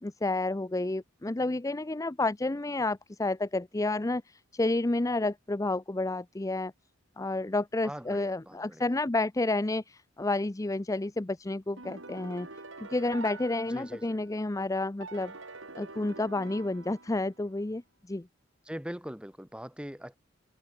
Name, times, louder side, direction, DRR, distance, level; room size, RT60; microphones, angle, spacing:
voice 1, 0.0-6.7 7.2-12.5 12.8-15.3 15.7-17.8 18.1-18.3, left 2 dB, 15° left, 0.5 m, -30 dB
voice 2, 7.8-8.9 13.7-14.2 18.7-20.2, equal, 5° right, 1.9 m, -41 dB
sound 1, 11.8-14.4 15.0-17.5, right 3 dB, 80° right, 6.4 m, -46 dB
head